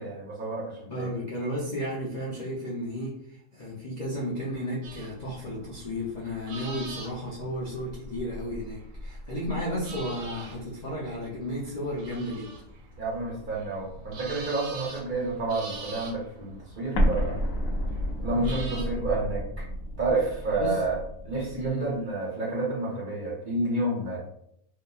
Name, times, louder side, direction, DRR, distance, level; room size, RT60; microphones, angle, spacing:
voice 1, 0.0-1.1 13.0-17.4 18.2-19.7 20.0-21.0 21.2-24.2, right 2 dB, 50° right, -5 dB, 0.7 m, -30 dB
voice 2, 0.9-12.5 18.3-18.8 20.6-20.8 21.6-21.9, equal, 55° left, -6 dB, 0.4 m, -33 dB
sound 1, 4.8-18.8, right 2 dB, 85° right, 1.0 m, -44 dB
Explosion, 16.9-21.7, equal, 85° left, 1.0 m, -30 dB
2.7 x 2.3 x 2.3 m, 0.73 s
omnidirectional pair, 1.4 m